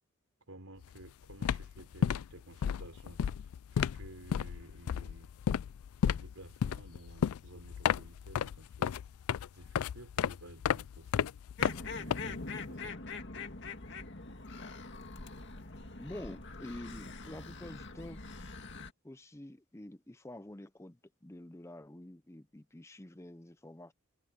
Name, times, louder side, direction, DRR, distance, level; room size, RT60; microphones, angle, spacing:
voice 1, 0.5-3.2 3.7-5.3 6.0-9.0 9.5-11.3 12.0-13.0, right 1 dB, 70° right, 4.0 m, -53 dB
sound 1, 0.8-1.0 1.3-12.7, left 8 dB, 75° left, 0.3 m, -33 dB
sound 2, 11.6-18.9, left 3 dB, 55° left, 2.1 m, -43 dB
voice 2, 16.0-18.3 19.0-23.9, left 1 dB, 10° left, 0.6 m, -48 dB
head